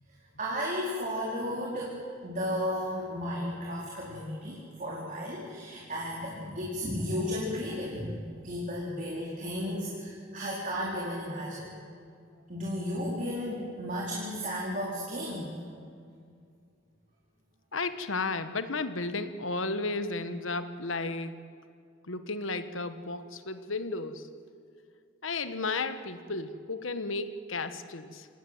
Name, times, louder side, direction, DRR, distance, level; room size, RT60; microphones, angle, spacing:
voice 1, 0.4-11.7 12.5-15.5, equal, 40° right, -4 dB, 4.1 m, -34 dB
voice 2, 17.7-21.4 22.1-24.3 25.2-28.3, left 3 dB, 80° left, 11 dB, 1.3 m, -33 dB
26.5 x 18.0 x 9.3 m, 2.3 s
head